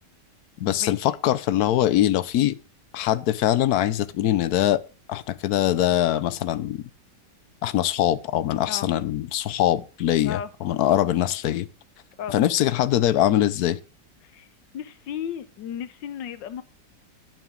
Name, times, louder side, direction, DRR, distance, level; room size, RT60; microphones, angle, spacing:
voice 1, 0.6-2.5 2.9-4.8 5.1-6.8 7.6-11.7 12.3-13.8, left 12 dB, 65° left, 1.1 m, -22 dB
voice 2, 14.7-16.6, left 9 dB, 85° left, 1.6 m, -34 dB
10.5 x 8.9 x 3.7 m
omnidirectional pair, 1.9 m